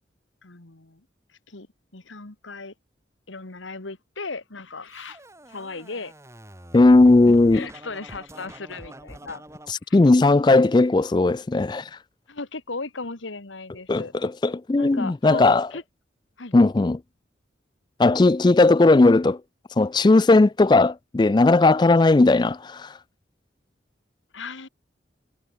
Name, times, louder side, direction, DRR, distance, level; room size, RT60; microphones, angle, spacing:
voice 1, 0.4-1.0 1.5-1.7 1.9-2.7 3.3-5.2 5.5-6.1 7.3-9.4 9.9-10.0 12.3-14.1 14.8-15.8 16.4-16.5 24.3-24.7, left 3 dB, 90° left, 1.9 m, -36 dB
Scratching (performance technique), 4.9-9.7, right 1 dB, 15° right, 4.6 m, -44 dB
voice 2, 6.7-7.7 9.7-11.9 13.9-15.7 16.5-17.0 18.0-19.4 19.8-22.9, left 2 dB, 25° left, 0.3 m, -17 dB
head